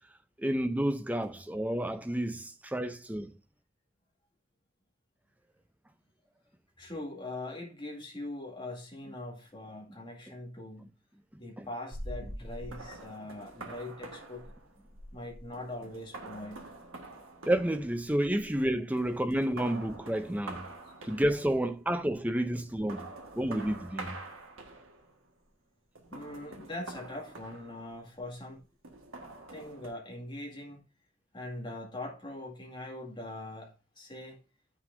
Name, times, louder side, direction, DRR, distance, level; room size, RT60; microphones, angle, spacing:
voice 1, 0.4-3.3 11.6-11.7 17.5-20.6 21.0-23.1 23.4-24.1, right 1 dB, 5° right, 0.5 m, -30 dB
voice 2, 6.8-10.9 11.4-14.5 15.1-16.6 26.1-28.6 29.5-30.8 31.3-34.4, left 1 dB, 20° left, 2.0 m, -42 dB
sound 1, 11.9-18.6 19.0-21.7 22.5-25.2 26.0-28.2 28.8-29.9, right 2 dB, 70° right, 1.7 m, -46 dB
9.7 x 6.0 x 2.6 m
head